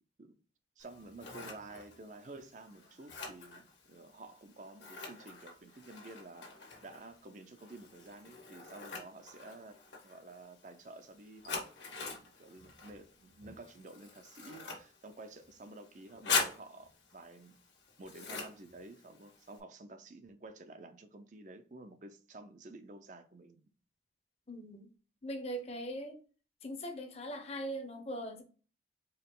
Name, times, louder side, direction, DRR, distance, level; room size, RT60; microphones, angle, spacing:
Scissors, 0.8-19.6, left 4 dB, 85° left, 1.6 m, -43 dB
voice 1, 0.8-6.5 6.8-9.8 10.0-11.6 11.9-17.6 18.0-23.6, right 2 dB, 45° right, 0.5 m, -51 dB
voice 2, 24.5-24.9 25.2-26.2 26.6-28.4, equal, 35° left, 0.8 m, -40 dB
4.6 x 2.9 x 3.7 m
head